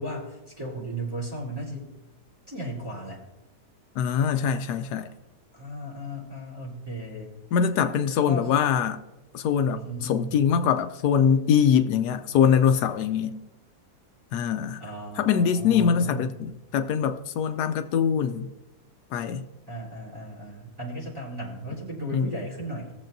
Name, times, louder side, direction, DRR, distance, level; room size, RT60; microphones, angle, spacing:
voice 1, 0.0-1.9 2.5-3.2 5.5-7.3 8.3-8.5 9.8-10.3 14.8-16.4 19.7-22.9, right 1 dB, 15° right, -8 dB, 3.2 m, -36 dB
voice 2, 4.0-5.1 7.5-9.0 9.3-13.4 14.3-14.8 15.2-18.5 19.1-19.4 22.1-22.3, left 7 dB, 80° left, 9 dB, 1.1 m, -23 dB
19.0 x 7.1 x 2.6 m, 1.0 s
omnidirectional pair, 1.7 m